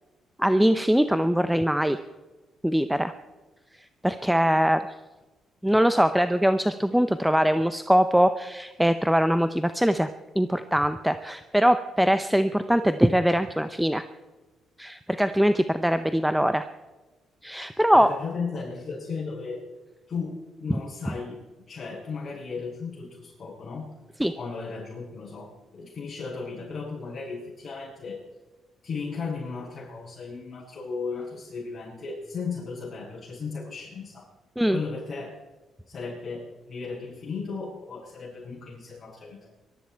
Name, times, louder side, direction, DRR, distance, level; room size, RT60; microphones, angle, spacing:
voice 1, 0.4-2.0 2.6-3.1 4.0-4.8 5.6-10.1 10.4-14.0 14.8-16.6 17.4-18.1 20.7-20.8 24.2-24.3 34.6-34.8, equal, 5° right, 10 dB, 0.6 m, -22 dB
voice 2, 17.9-19.6 20.1-23.9 24.4-28.2 28.8-34.3 34.7-35.3 35.9-39.5, left 4 dB, 40° left, -9 dB, 6.6 m, -35 dB
22.0 x 13.0 x 4.6 m, 1.2 s
cardioid pair, 90°, 0 cm